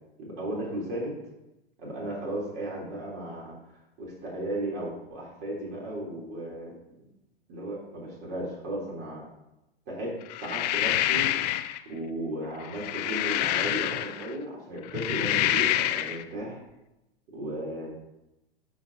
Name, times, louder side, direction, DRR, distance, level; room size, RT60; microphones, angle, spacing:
voice 1, 0.2-1.1 1.8-3.5 4.0-6.7 7.5-9.3 9.9-11.3 11.9-16.6 17.3-17.9, right 1 dB, 45° right, -4 dB, 3.5 m, -35 dB
sound 1, 10.3-11.8 12.6-14.3 14.8-16.2, left 14 dB, 45° left, 0.5 m, -27 dB
15.0 x 5.1 x 2.8 m, 0.91 s
hypercardioid pair, 100°, 31 cm